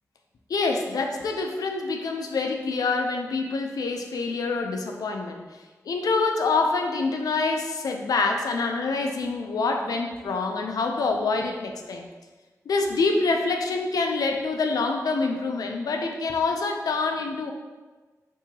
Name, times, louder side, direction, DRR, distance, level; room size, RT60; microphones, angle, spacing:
voice 1, 0.5-5.5 5.9-12.1 12.7-17.5, left 3 dB, 90° left, 3 dB, 0.4 m, -26 dB
3.8 x 2.7 x 2.8 m, 1.3 s
wide cardioid pair, 115°, 6 cm